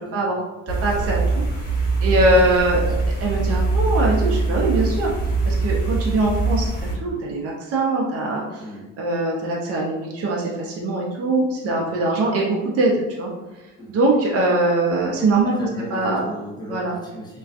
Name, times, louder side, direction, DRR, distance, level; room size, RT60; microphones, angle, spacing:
sound 1, 0.7-6.9, right 3 dB, 30° left, 1.2 m, -22 dB
voice 1, 0.7-1.2 1.6-2.9 3.2-5.1 5.5-8.6 9.0-13.3 13.9-15.5 15.9-16.2 16.7-17.0, right 2 dB, 50° right, -2 dB, 0.6 m, -22 dB
voice 2, 8.6-8.9 11.6-11.9 13.8-14.0 15.5-17.4, equal, 15° left, -4 dB, 0.7 m, -37 dB
2.3 x 2.3 x 2.4 m, 1.1 s
cardioid pair, 90°, 30 cm